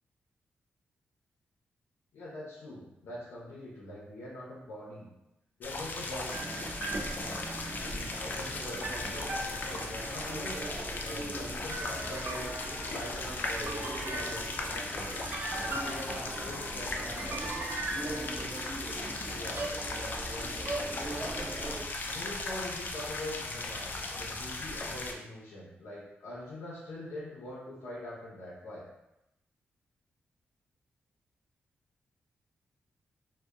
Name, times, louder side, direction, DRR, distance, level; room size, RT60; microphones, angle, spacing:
voice 1, 2.1-5.1 5.6-6.4 7.1-10.6 11.0-12.5 12.9-17.5 18.0-18.5 19.3-21.3 22.1-23.9 24.1-28.9, left 1 dB, 85° left, -7 dB, 0.6 m, -43 dB
sound 1, 5.6-25.1, left 2 dB, 45° left, 0.3 m, -38 dB
sound 2, 6.3-21.8, right 2 dB, 50° right, 0.4 m, -39 dB
2.7 x 2.1 x 2.2 m, 0.88 s
cardioid pair, 85°, 4 cm